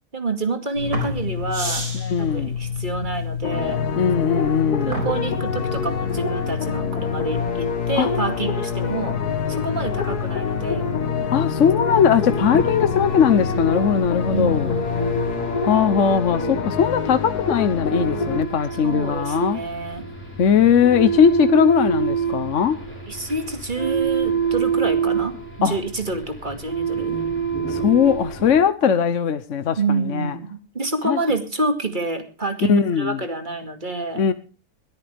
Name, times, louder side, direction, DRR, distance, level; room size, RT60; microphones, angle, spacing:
voice 1, 0.1-1.9 2.2-3.8 4.9-9.2 9.5-10.9 14.3-15.0 18.8-20.1 23.1-27.2 29.8-34.2, right 3 dB, 30° right, 2.4 m, -28 dB
sound 1, 0.7-15.4, left 6 dB, 75° right, 4.9 m, -29 dB
voice 2, 2.0-2.5 4.0-5.0 8.0-8.1 11.3-14.7 15.6-19.6 20.4-22.8 25.6-25.8 27.7-30.3 31.0-31.2 32.7-33.2 34.2-34.3, left 7 dB, 55° left, 1.2 m, -19 dB
sound 2, 3.4-18.4, left 5 dB, 85° left, 2.0 m, -27 dB
sound 3, 11.9-28.6, right 6 dB, 5° left, 4.5 m, -27 dB
21.0 x 14.0 x 3.5 m
omnidirectional pair, 1.6 m